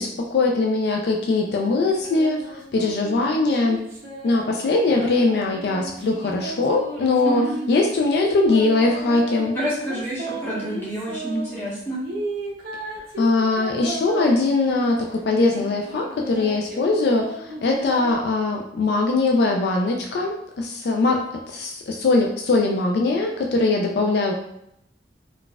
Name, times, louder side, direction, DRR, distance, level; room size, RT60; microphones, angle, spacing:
voice 1, 0.0-3.8 4.2-9.5 13.2-24.3, left 3 dB, 65° left, 1 dB, 0.3 m, -21 dB
sound 1, 1.4-4.4 4.9-7.6 8.4-11.5 12.0-15.0 15.5-18.1, right 1 dB, 55° right, 0.7 m, -35 dB
voice 2, 9.5-12.0, right 1 dB, 15° left, -8 dB, 1.1 m, -28 dB
3.9 x 2.3 x 2.2 m, 0.77 s
head